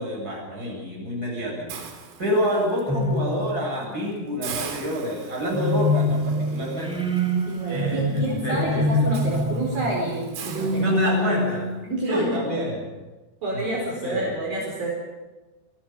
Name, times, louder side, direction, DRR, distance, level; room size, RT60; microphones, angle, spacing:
voice 1, 0.0-1.8 2.2-7.0 7.7-8.9 10.7-11.7 12.1-12.8 13.5-13.7 14.0-14.3, equal, 20° right, -1 dB, 8.4 m, -28 dB
Hiss, 1.7-2.8 3.3-3.5 3.8-3.9 4.4-11.5, right 6 dB, 85° right, 5.3 m, -41 dB
sound 1, 2.9-4.0 5.5-12.0, left 1 dB, ahead, 2.9 m, -25 dB
voice 2, 7.5-11.4 11.8-12.6 13.4-14.9, right 1 dB, 50° right, -2 dB, 6.2 m, -29 dB
27.0 x 24.0 x 5.6 m, 1.2 s
omnidirectional pair, 5.5 m